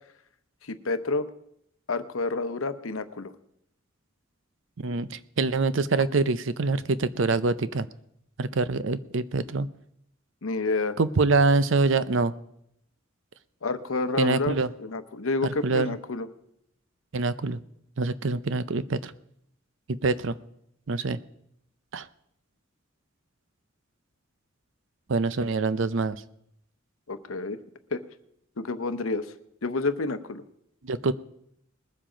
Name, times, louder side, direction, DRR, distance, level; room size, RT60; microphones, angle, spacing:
voice 1, 0.6-1.3 1.9-3.3 10.4-11.0 13.6-16.3 27.1-27.6 27.9-28.0 28.6-29.3 29.6-30.4, left 3 dB, 80° left, 11 dB, 0.9 m, -29 dB
voice 2, 4.8-7.9 8.4-9.7 11.0-12.3 14.2-14.7 15.6-16.0 17.1-17.6 18.0-19.1 19.9-20.4 20.9-21.2 21.9-22.1 25.1-26.2 30.8-31.1, right 3 dB, 65° right, 15 dB, 0.6 m, -25 dB
20.5 x 7.5 x 5.1 m, 0.75 s
head